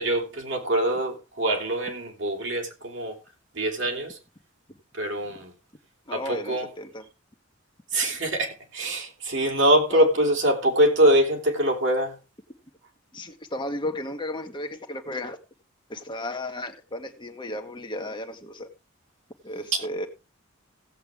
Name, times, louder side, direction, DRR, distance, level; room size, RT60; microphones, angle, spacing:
voice 1, 0.0-3.2 3.5-4.2 5.0-5.5 6.1-6.7 7.9-12.2, right 1 dB, 65° right, 3.2 m, -24 dB
voice 2, 6.1-7.1 9.9-10.1 13.1-15.4 15.9-18.7 19.4-20.1, left 1 dB, 25° left, 1.3 m, -34 dB
16.5 x 7.8 x 3.5 m
head